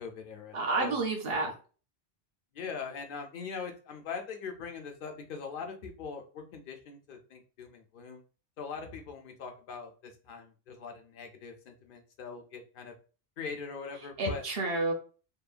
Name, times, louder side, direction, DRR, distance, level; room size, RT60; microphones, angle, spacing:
voice 1, 0.0-1.0 1.4-1.5 2.5-8.2 8.6-12.9 13.4-14.4, left 5 dB, 60° left, 4 dB, 0.7 m, -41 dB
voice 2, 0.5-1.5 14.2-14.9, right 3 dB, 65° right, 3 dB, 0.9 m, -30 dB
2.9 x 2.1 x 2.4 m, 0.36 s
omnidirectional pair, 1.1 m